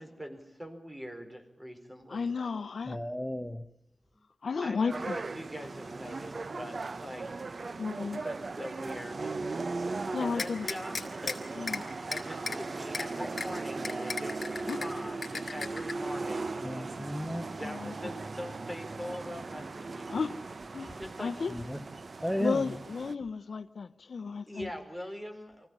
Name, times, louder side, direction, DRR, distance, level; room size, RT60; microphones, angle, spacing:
voice 1, 0.0-2.5 4.6-7.3 8.0-9.4 10.2-11.5 12.0-17.0 17.6-20.3 21.0-21.3 24.5-25.7, equal, 15° right, 4.4 m, -43 dB
voice 2, 2.1-3.0 4.4-5.2 7.8-8.3 10.1-10.7 11.5-12.0 14.7-14.9 17.6-18.2 20.1-20.4 20.7-21.6 22.4-24.7, left 5 dB, 80° left, 0.8 m, -34 dB
voice 3, 2.9-3.6 13.2-13.3 16.6-17.5 21.5-21.8 22.2-22.7, equal, ahead, 1.3 m, -34 dB
sound 1, 4.9-23.1, right 3 dB, 55° right, 0.8 m, -38 dB
sound 2, 10.4-11.3 11.7-11.8 12.1-12.6 12.9-13.0 13.4-13.5 13.8-14.9 15.2-15.9, left 4 dB, 60° left, 4.0 m, -34 dB
24.5 x 16.0 x 9.8 m
wide cardioid pair, 100°, 0 cm